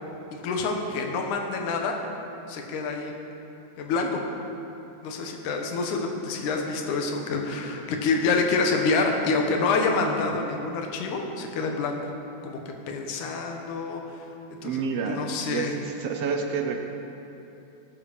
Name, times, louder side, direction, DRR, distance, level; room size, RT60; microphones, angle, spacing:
voice 1, 0.3-2.0 2.5-3.1 3.8-4.2 5.0-12.1 12.4-12.6 12.9-14.3 14.6-15.8, left 4 dB, 75° left, 2 dB, 2.6 m, -27 dB
voice 2, 14.6-16.8, right 5 dB, 70° right, 4 dB, 1.5 m, -29 dB
19.0 x 7.8 x 5.2 m, 2.9 s
omnidirectional pair, 3.6 m